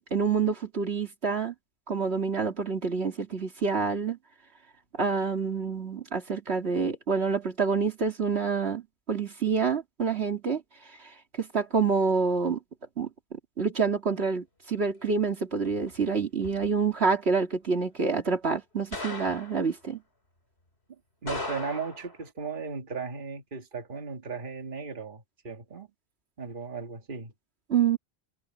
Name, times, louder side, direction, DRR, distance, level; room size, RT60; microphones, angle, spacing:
voice 1, 0.0-1.5 1.9-4.2 5.0-8.8 9.1-10.6 11.4-12.6 13.0-20.0 27.7-28.0, right 5 dB, 90° right, 2.7 m, -27 dB
sound 1, 15.7-16.1 16.4-16.7 18.9-19.7 21.3-22.2, left 2 dB, 80° left, 3.6 m, -37 dB
voice 2, 21.2-25.9 26.4-27.3, right 5 dB, 55° right, 1.9 m, -36 dB
omnidirectional pair, 1.1 m